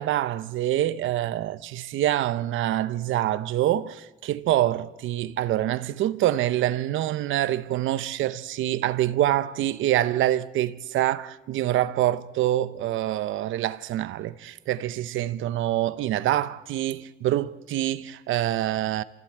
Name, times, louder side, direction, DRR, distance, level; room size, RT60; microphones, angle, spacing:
voice 1, 0.0-19.0, right 13 dB, 85° right, 0.9 m, -26 dB
27.5 x 15.0 x 8.7 m
cardioid pair, 90°, 20 cm